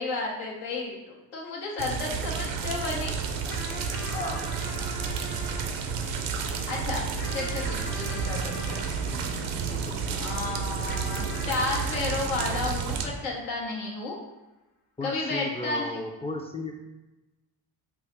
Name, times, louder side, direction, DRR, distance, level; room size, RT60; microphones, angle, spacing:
voice 1, 0.0-3.2 6.7-7.0 7.3-8.8 10.2-14.1 15.0-16.0, left 3 dB, 85° left, -2 dB, 0.8 m, -32 dB
sound 1, 1.8-13.1, right 6 dB, 80° right, 0.5 m, -31 dB
sound 2, 3.5-10.2 10.9-13.7, left 3 dB, 50° left, 0.8 m, -43 dB
voice 2, 4.1-4.5 9.1-9.3 9.7-10.3 15.0-16.7, left 2 dB, 15° left, 1 dB, 0.3 m, -35 dB
3.6 x 2.1 x 3.1 m, 1.0 s
supercardioid pair, 55°, 46 cm